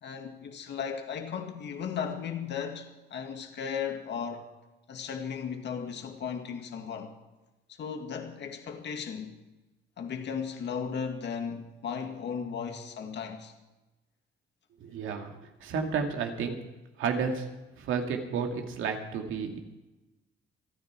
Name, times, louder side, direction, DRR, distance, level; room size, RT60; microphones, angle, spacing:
voice 1, 0.0-4.5 4.9-7.1 7.7-9.4 10.0-13.5, left 7 dB, 60° left, 2.1 m, -36 dB
voice 2, 14.8-15.3 15.6-16.6 17.0-17.5 17.8-19.6, right 5 dB, 85° right, 2.4 m, -31 dB
28.0 x 9.6 x 4.7 m
cardioid pair, 90°, 20 cm